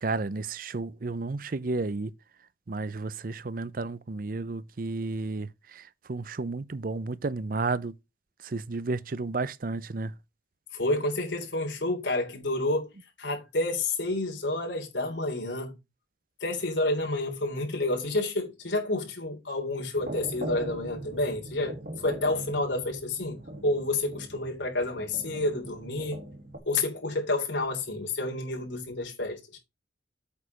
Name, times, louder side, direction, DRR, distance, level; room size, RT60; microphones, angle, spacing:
voice 1, 0.0-2.1 2.7-7.9 8.4-10.1, right 3 dB, 50° right, 0.6 m, -32 dB
voice 2, 10.7-12.9 13.2-15.7 16.4-23.4 23.6-26.2 26.7-29.4, left 2 dB, 85° left, 3.4 m, -29 dB
sound 1, 19.9-26.6, right 1 dB, 65° right, 3.5 m, -40 dB
8.3 x 5.0 x 5.8 m
head